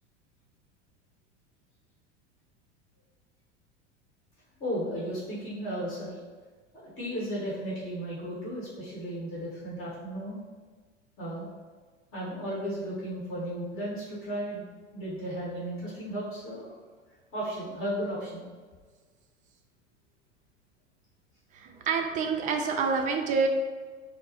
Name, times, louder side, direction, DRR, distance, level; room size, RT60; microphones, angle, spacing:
voice 1, 4.6-6.2 6.8-10.4 11.2-11.5 12.1-14.6 14.9-16.8 17.3-18.4, equal, 35° left, -8 dB, 1.4 m, -34 dB
voice 2, 21.5-23.5, right 5 dB, 25° right, 4 dB, 0.3 m, -27 dB
4.2 x 2.0 x 3.0 m, 1.5 s
hypercardioid pair, 90°, 36 cm